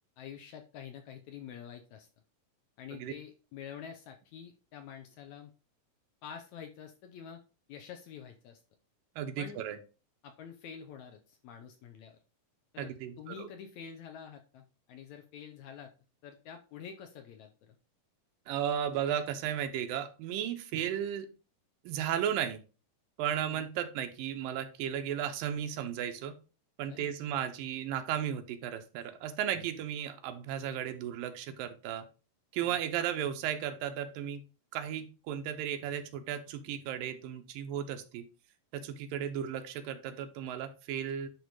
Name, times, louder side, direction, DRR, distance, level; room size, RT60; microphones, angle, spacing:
voice 1, 0.2-2.1 2.8-5.5 6.2-7.4 7.7-8.6 9.4-9.6 10.2-12.2 12.7-15.9 16.2-17.8 23.4-23.7 26.9-27.1 32.6-32.8, left 8 dB, 70° left, 5 dB, 1.9 m, -47 dB
voice 2, 9.2-9.8 12.8-13.5 18.5-21.3 21.8-22.6 23.2-26.3 26.8-32.0 32.5-34.4 34.7-38.2 38.7-41.3, right 9 dB, 90° right, 8 dB, 2.6 m, -35 dB
10.5 x 3.6 x 4.7 m, 0.34 s
omnidirectional pair, 3.9 m